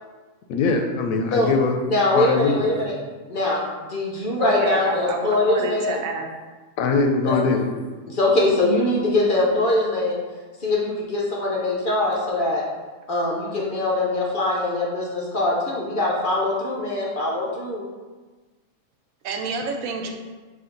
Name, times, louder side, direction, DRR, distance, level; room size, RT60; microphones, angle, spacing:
voice 1, 0.5-1.8 2.1-2.6 6.8-7.6, left 4 dB, 80° left, 3 dB, 1.0 m, -22 dB
voice 2, 1.8-2.9 3.3-3.6 3.9-6.0 7.2-7.6 8.1-10.2 10.6-12.6 13.1-17.9, left 2 dB, 50° left, -3 dB, 0.7 m, -22 dB
voice 3, 4.4-6.3 19.2-20.1, right 4 dB, 80° right, 3 dB, 1.0 m, -28 dB
4.2 x 2.8 x 3.8 m, 1.3 s
omnidirectional pair, 1.4 m